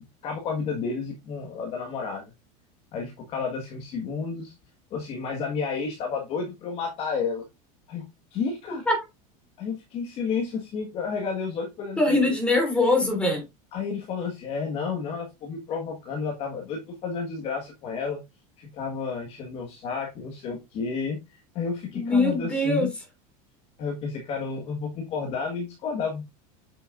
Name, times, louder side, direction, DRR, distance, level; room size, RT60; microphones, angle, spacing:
voice 1, 0.0-2.3 2.9-4.5 4.9-7.5 7.9-8.0 8.3-8.9 9.6-12.3 13.7-18.2 18.6-22.9 23.8-26.2, left 5 dB, 30° left, 1.6 m, -31 dB
voice 2, 12.0-13.4 21.9-22.9, left 2 dB, 5° left, 3.3 m, -22 dB
8.8 x 6.8 x 2.5 m
supercardioid pair, 175°, 19 cm